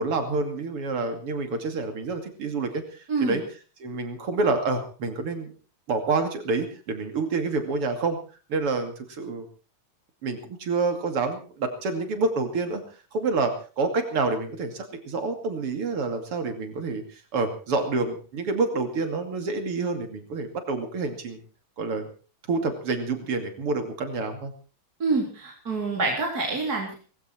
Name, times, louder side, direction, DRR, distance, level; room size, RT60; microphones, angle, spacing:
voice 1, 0.0-2.8 3.2-3.4 3.8-5.5 5.9-8.2 8.5-9.5 10.2-12.8 13.1-21.4 21.8-22.1 22.5-24.5, right 3 dB, 85° right, 7 dB, 3.5 m, -28 dB
voice 2, 25.0-26.9, right 3 dB, 40° right, 0 dB, 4.0 m, -26 dB
19.0 x 15.5 x 4.4 m, 0.37 s
omnidirectional pair, 2.4 m